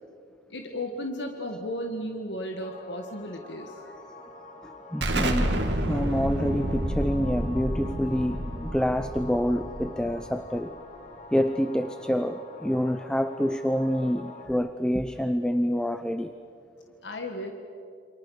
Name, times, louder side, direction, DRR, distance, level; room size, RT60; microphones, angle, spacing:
voice 1, 0.5-3.8 17.0-17.5, left 1 dB, 80° left, 3 dB, 1.8 m, -34 dB
sound 1, 2.6-14.5, left 3 dB, 40° left, 3.1 m, -46 dB
voice 2, 4.6-10.8 11.3-16.3, equal, 5° left, 10 dB, 0.6 m, -27 dB
Explosion, 5.0-10.4, right 1 dB, 80° right, 2.5 m, -29 dB
28.5 x 27.0 x 6.5 m, 2.6 s
head